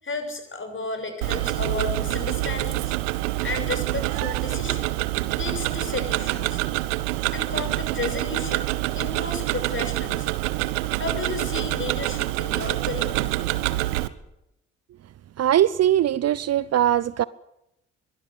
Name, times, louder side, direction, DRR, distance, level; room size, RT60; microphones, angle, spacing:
voice 1, 0.0-2.9 3.4-4.9 5.3-6.6 7.3-8.7 8.9-10.4 11.0-13.2, left 3 dB, 30° left, 7.0 m, -33 dB
Tick-tock, 1.2-14.1, right 17 dB, 70° right, 1.2 m, -26 dB
voice 2, 15.4-17.2, right 11 dB, 40° right, 0.7 m, -21 dB
22.5 x 17.5 x 8.2 m
figure-of-eight pair, 45°, 38 cm